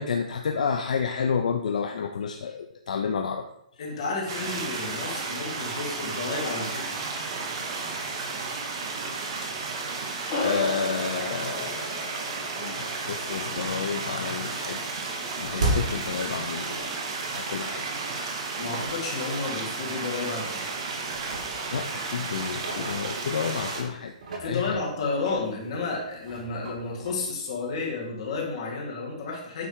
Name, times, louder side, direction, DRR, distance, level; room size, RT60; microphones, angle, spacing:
voice 1, 0.0-3.4 10.4-12.3 12.6-14.8 15.2-17.0 17.3-17.8 21.7-24.1 24.5-24.8, left 6 dB, 65° left, 4 dB, 0.6 m, -30 dB
voice 2, 3.8-6.9 18.6-20.6 24.4-29.7, left 3 dB, 40° left, -2 dB, 1.9 m, -31 dB
sound 1, 4.3-23.8, right 4 dB, 35° right, 1.1 m, -33 dB
sound 2, 10.3-15.0, left 3 dB, 25° left, 1.3 m, -35 dB
sound 3, 14.8-17.0 17.3-17.4 18.2-18.3 18.8-18.9 19.2-19.4 20.1-20.6 21.0-23.6 24.1-28.0, right 1 dB, 75° right, 2.8 m, -36 dB
8.9 x 3.3 x 4.7 m, 0.79 s
hypercardioid pair, 175°, 4 cm